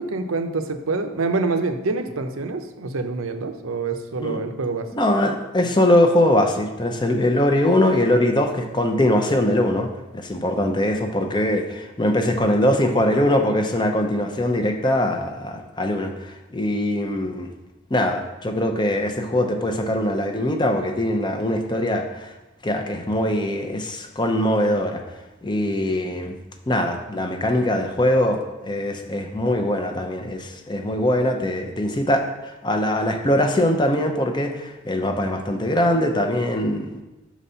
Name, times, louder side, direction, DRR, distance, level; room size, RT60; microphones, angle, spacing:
voice 1, 0.0-4.9 7.0-7.2, right 3 dB, 90° right, 7 dB, 0.6 m, -26 dB
voice 2, 4.9-17.5 17.9-22.3 22.6-25.0 25.4-26.4 26.7-37.0, left 1 dB, 20° left, 5 dB, 0.6 m, -22 dB
6.2 x 4.1 x 5.5 m, 1.1 s
head